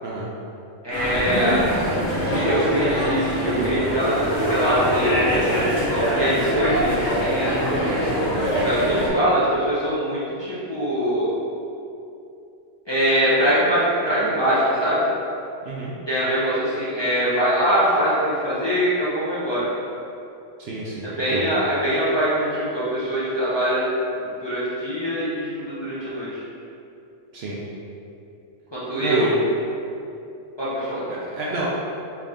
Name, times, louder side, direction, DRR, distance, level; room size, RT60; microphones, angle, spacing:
voice 1, 0.8-1.6 2.3-7.5 8.6-11.3 12.9-15.1 16.1-19.7 21.2-23.8 24.2-26.4 28.7-29.3 30.6-31.1, equal, 30° left, -11 dB, 0.6 m, -23 dB
sound 1, 0.9-9.1, equal, 60° left, 1.3 m, -23 dB
voice 2, 15.6-15.9 20.6-21.5 27.3-27.6 29.0-29.3 31.1-31.7, right 2 dB, 65° right, -5 dB, 0.7 m, -30 dB
3.5 x 2.6 x 3.4 m, 2.7 s
omnidirectional pair, 1.3 m